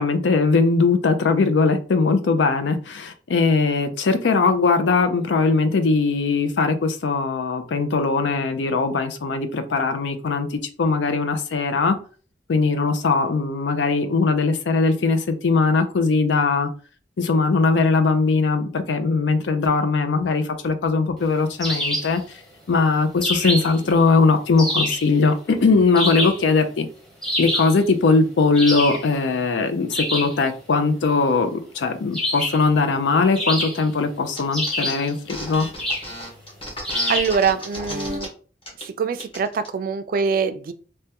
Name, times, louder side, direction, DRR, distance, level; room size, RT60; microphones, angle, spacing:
voice 1, 0.0-12.0 12.5-16.7 17.2-22.4 22.7-26.9 27.4-35.7, left 4 dB, 85° left, 9 dB, 0.4 m, -20 dB
sound 1, 21.6-22.2 23.2-23.8 24.6-25.1 26.0-26.5 27.2-27.8 28.5-29.1 29.9-30.4 32.1-32.7 33.4-34.0 34.5-35.1 35.8-36.1 36.8-37.4, left 1 dB, 5° left, 0.8 m, -26 dB
sound 2, 34.3-34.4 34.7-38.2 38.6-38.9 39.2-39.7, left 1 dB, 30° left, 1.0 m, -33 dB
voice 2, 37.1-38.3 38.8-40.7, right 5 dB, 50° right, 11 dB, 0.3 m, -24 dB
3.3 x 2.2 x 2.8 m, 0.40 s
head